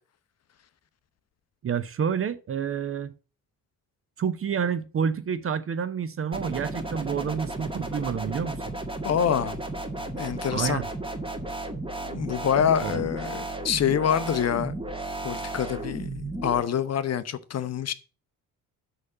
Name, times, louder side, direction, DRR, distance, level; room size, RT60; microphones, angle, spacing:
voice 1, 1.6-3.1 4.2-8.6 10.5-10.9 12.8-13.1, right 7 dB, 30° right, 0.6 m, -29 dB
sound 1, 6.3-16.6, right 2 dB, 10° right, 1.7 m, -34 dB
voice 2, 9.0-9.6 10.1-10.8 12.0-14.7 15.2-17.9, left 8 dB, 35° left, 0.7 m, -26 dB
6.4 x 5.5 x 6.9 m
figure-of-eight pair, 45°, 47 cm